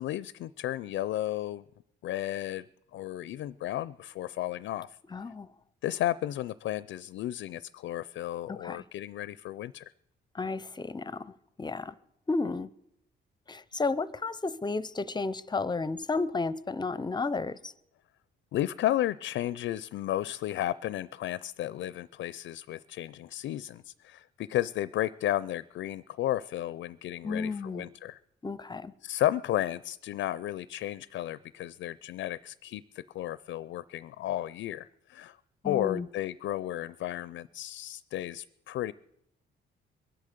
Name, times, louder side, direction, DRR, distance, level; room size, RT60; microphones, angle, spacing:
voice 1, 0.0-1.6 2.0-2.7 2.9-5.0 5.8-9.8 18.5-28.2 29.0-35.4 35.6-38.9, left 13 dB, 75° left, 0.5 m, -33 dB
voice 2, 5.1-5.5 8.5-8.8 10.3-11.9 12.3-12.7 13.5-17.7 27.2-27.9 28.4-28.9 35.6-36.1, left 3 dB, 20° left, 0.6 m, -32 dB
22.5 x 8.6 x 6.7 m
cardioid pair, 90°, 20 cm